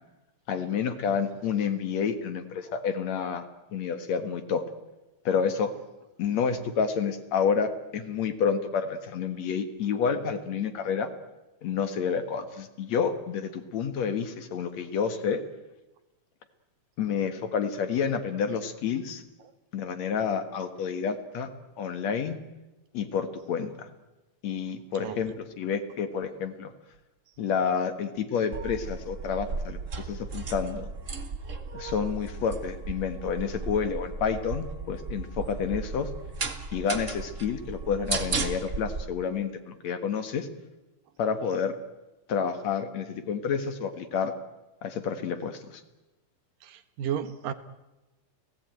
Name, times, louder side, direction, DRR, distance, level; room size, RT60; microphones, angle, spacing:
voice 1, 0.5-3.4 3.7-4.6 5.3-5.7 6.2-11.1 11.6-15.4 17.0-19.2 19.7-21.5 21.8-22.4 22.9-23.9 24.4-26.7 27.4-30.9 31.7-36.1 36.7-40.5 41.2-41.7 42.3-44.3 44.8-45.8, left 6 dB, 60° left, 9 dB, 2.6 m, -29 dB
sound 1, 28.5-39.0, right 4 dB, 35° right, 1.2 m, -35 dB
voice 2, 46.6-47.5, right 9 dB, 85° right, 11 dB, 2.9 m, -33 dB
30.0 x 18.0 x 9.1 m, 1.1 s
omnidirectional pair, 3.8 m